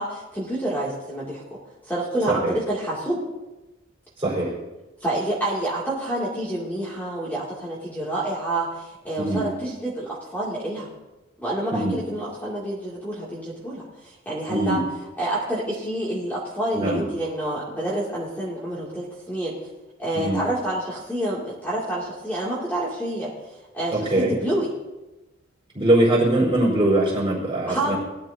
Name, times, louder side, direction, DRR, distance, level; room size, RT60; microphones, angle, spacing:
voice 1, 0.0-1.4 1.8-3.2 5.0-10.9 11.4-14.8 15.2-19.5 20.0-23.3 23.7-24.7 27.7-28.0, right 1 dB, 10° left, -7 dB, 2.4 m, -28 dB
voice 2, 4.2-4.5 9.2-9.4 11.7-11.9 14.5-14.8 16.7-17.0 20.1-20.4 23.9-24.3 25.7-28.0, right 1 dB, 20° right, -7 dB, 4.7 m, -21 dB
20.0 x 12.5 x 2.7 m, 1.0 s
head